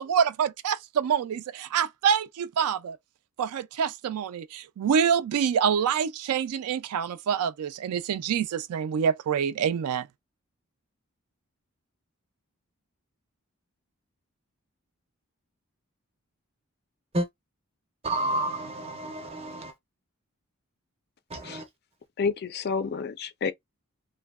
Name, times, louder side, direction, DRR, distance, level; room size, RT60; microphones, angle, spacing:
voice 1, 0.0-3.0 3.4-10.1, right 7 dB, 85° right, 0.3 m, -26 dB
voice 2, 18.0-19.7 21.3-21.7, right 1 dB, 25° right, 0.5 m, -30 dB
voice 3, 22.2-23.5, left 5 dB, 45° left, 0.3 m, -29 dB
2.7 x 2.1 x 2.3 m
head